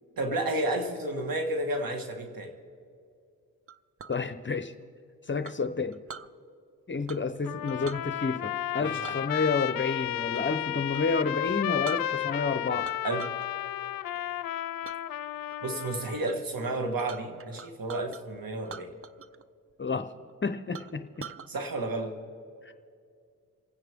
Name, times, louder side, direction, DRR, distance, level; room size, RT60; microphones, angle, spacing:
voice 1, 0.2-2.5 8.8-9.2 13.0-13.3 15.6-19.0 21.5-22.1, right 2 dB, 80° right, 4 dB, 1.9 m, -31 dB
Chink clink, 3.7-4.2 5.4-6.3 7.1-7.4 7.7-8.0 9.0-10.6 10.9-11.1 11.5-11.6 11.8-12.5 12.8-13.5 13.8-14.2 14.8-15.0 15.5-15.9 16.2-16.4 16.6-18.2 18.6-19.4 19.7-19.8 20.3-20.4 20.7-21.5, right 7 dB, 40° right, 0.6 m, -44 dB
voice 2, 4.1-4.7 5.3-6.0 6.9-12.9 19.8-20.1 20.4-21.3 22.6-22.7, left 4 dB, 35° left, 9 dB, 0.8 m, -30 dB
Trumpet, 7.5-16.3, left 13 dB, 80° left, 0.5 m, -33 dB
28.0 x 9.8 x 3.6 m, 2.4 s
cardioid pair, 65°, 34 cm